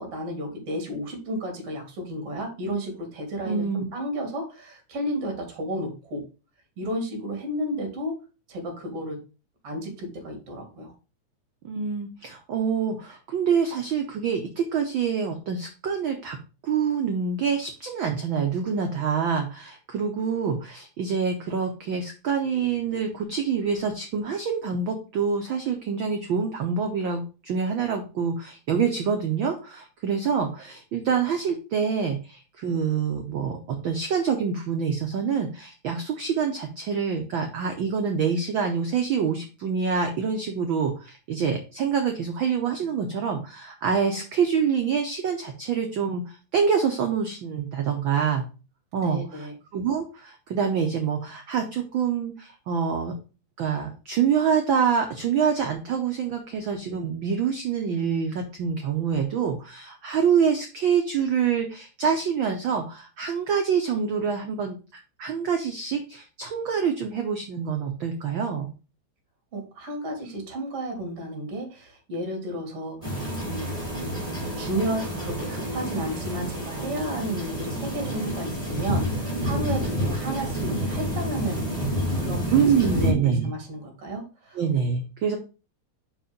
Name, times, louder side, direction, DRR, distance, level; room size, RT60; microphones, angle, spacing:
voice 1, 0.0-6.2 6.8-8.2 8.5-9.2 9.6-10.9 49.0-49.5 69.5-73.8 74.6-81.7 82.2-84.6, equal, 55° right, 3 dB, 3.1 m, -32 dB
voice 2, 3.4-3.8 11.6-16.4 16.6-48.5 48.9-53.1 53.6-68.7 82.5-83.5 84.5-85.4, right 6 dB, 90° right, 4 dB, 1.0 m, -26 dB
sound 1, 73.0-83.1, equal, 10° left, 3.1 m, -29 dB
5.2 x 4.9 x 5.1 m, 0.33 s
omnidirectional pair, 3.3 m